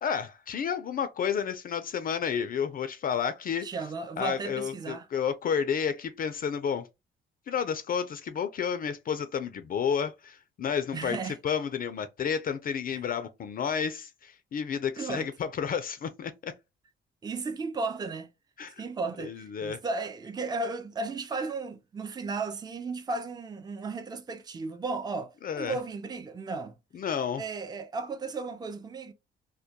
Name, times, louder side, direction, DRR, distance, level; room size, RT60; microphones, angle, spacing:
voice 1, 0.0-3.7 4.2-6.9 7.5-11.2 11.4-16.5 18.6-18.8 19.2-19.8 25.4-25.7 26.9-27.4, left 7 dB, 45° left, 0.4 m, -31 dB
voice 2, 3.6-5.1 10.9-11.4 12.9-13.0 15.0-15.3 17.2-18.3 18.8-26.7 27.4-29.1, right 3 dB, 20° right, 0.4 m, -35 dB
2.2 x 2.1 x 2.7 m
cardioid pair, 90°, 20 cm